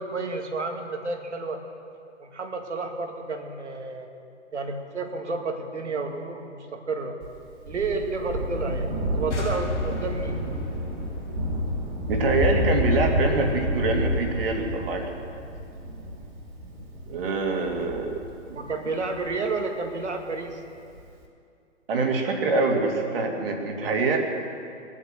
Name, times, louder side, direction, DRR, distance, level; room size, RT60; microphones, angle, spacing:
voice 1, 0.0-1.6 2.2-4.1 4.5-7.2 7.7-10.4 18.6-20.6, right 3 dB, 70° right, 4 dB, 2.1 m, -31 dB
Thunder, 7.2-20.1 21.0-21.1, equal, 35° right, 2.7 m, -29 dB
sound 1, 9.3-12.8, left 1 dB, 70° left, 2.3 m, -36 dB
voice 2, 12.1-15.1 17.1-18.2 18.5-18.6 21.9-24.2, right 3 dB, 50° right, 2 dB, 2.6 m, -25 dB
20.5 x 8.5 x 7.7 m, 2.5 s
figure-of-eight pair, 120°, 37 cm